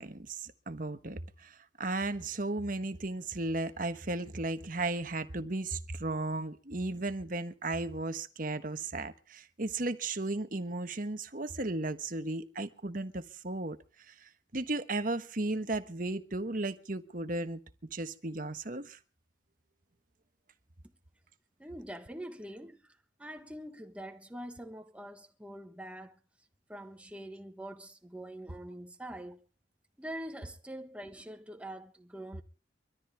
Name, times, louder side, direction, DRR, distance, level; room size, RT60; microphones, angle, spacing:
voice 1, 0.0-13.8 14.1-19.0, right 2 dB, 45° right, 1.2 m, -35 dB
voice 2, 21.6-26.2 26.7-29.4 30.0-32.4, right 1 dB, 5° right, 1.3 m, -44 dB
24.0 x 13.5 x 3.5 m
head